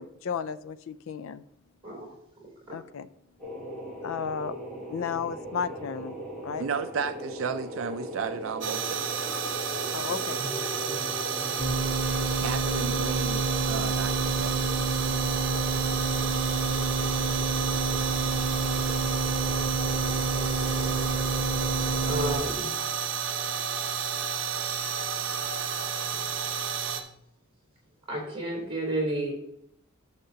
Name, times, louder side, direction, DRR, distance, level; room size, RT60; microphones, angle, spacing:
voice 1, 0.0-1.4 2.7-3.1 4.0-4.6 4.9-6.1 6.4-6.7 9.9-10.4, left 7 dB, 75° left, 15 dB, 0.4 m, -33 dB
sound 1, 3.4-22.5, equal, 5° left, 3.7 m, -38 dB
voice 2, 6.6-9.0 12.3-14.6, right 6 dB, 75° right, 9 dB, 0.4 m, -33 dB
sound 2, 8.6-27.0, right 7 dB, 60° right, 1.0 m, -31 dB
sound 3, 11.6-22.4, right 3 dB, 55° left, 1.2 m, -29 dB
voice 3, 22.1-22.7 28.1-29.3, right 1 dB, 25° right, -2 dB, 3.4 m, -31 dB
11.5 x 6.6 x 2.8 m, 0.74 s
head